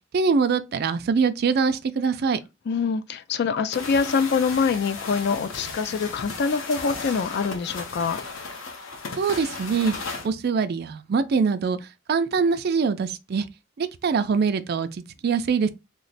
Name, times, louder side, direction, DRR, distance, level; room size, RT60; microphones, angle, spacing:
voice 1, 0.1-2.4 9.2-9.9 10.2-11.8 12.1-13.5 13.8-15.7, right 5 dB, 55° right, 0.4 m, -23 dB
voice 2, 2.7-8.2, left 5 dB, 60° left, 0.4 m, -25 dB
sound 1, 3.7-10.3, left 4 dB, 90° left, 0.7 m, -35 dB
3.1 x 2.1 x 3.9 m
head